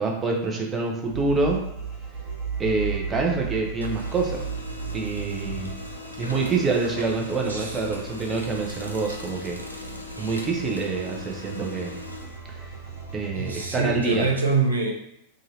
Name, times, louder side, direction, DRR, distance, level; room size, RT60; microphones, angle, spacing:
voice 1, 0.0-1.6 2.6-4.5 4.9-5.7 6.2-9.6 10.2-12.0 12.5-12.6 13.1-14.3, right 3 dB, 20° right, 0 dB, 0.6 m, -26 dB
sound 1, 1.1-14.0, right 5 dB, 50° right, 1.1 m, -36 dB
Printer, 2.1-3.4 3.7-13.2, left 3 dB, 85° left, 0.3 m, -40 dB
voice 2, 7.4-7.8 8.8-9.0 13.3-14.9, right 4 dB, 80° right, 0 dB, 0.5 m, -25 dB
2.7 x 2.5 x 3.0 m, 0.78 s
figure-of-eight pair, 90°, 0 cm